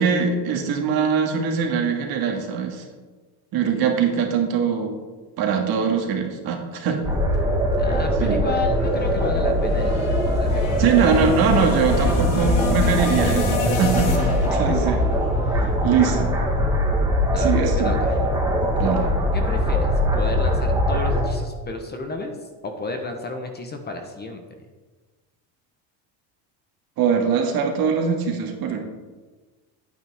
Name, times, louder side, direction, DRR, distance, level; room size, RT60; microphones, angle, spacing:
voice 1, 0.0-2.8 3.5-5.0 5.4-7.0 8.2-8.4 10.8-15.0 15.8-16.3 17.3-17.9 18.8-19.1 27.0-28.8, right 6 dB, 55° right, 2 dB, 1.9 m, -22 dB
sound 1, 7.0-21.3, equal, 10° right, 1.5 m, -21 dB
sound 2, 7.8-16.2, left 4 dB, 85° left, 1.8 m, -31 dB
voice 2, 7.8-11.2 11.9-12.5 14.5-14.8 17.3-18.2 19.3-24.4, left 3 dB, 25° left, 5 dB, 1.0 m, -32 dB
9.1 x 9.1 x 3.6 m, 1.3 s
cardioid pair, 130°, 43 cm